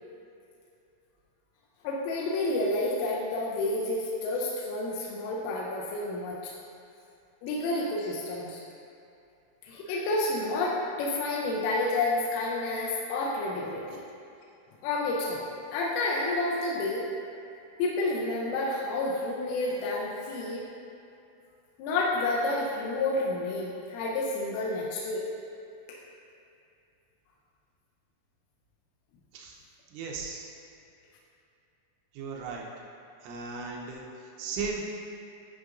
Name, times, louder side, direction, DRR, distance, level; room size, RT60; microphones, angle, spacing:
voice 1, 1.8-6.4 7.4-8.6 9.7-14.0 14.8-15.4 15.7-17.0 17.8-20.6 21.8-25.2, left 2 dB, 85° left, -4 dB, 3.2 m, -29 dB
voice 2, 29.9-30.5 32.1-32.7 33.2-34.1 34.4-34.8, right 4 dB, 80° right, -2 dB, 2.9 m, -36 dB
12.5 x 4.7 x 2.5 m, 2.6 s
omnidirectional pair, 5.6 m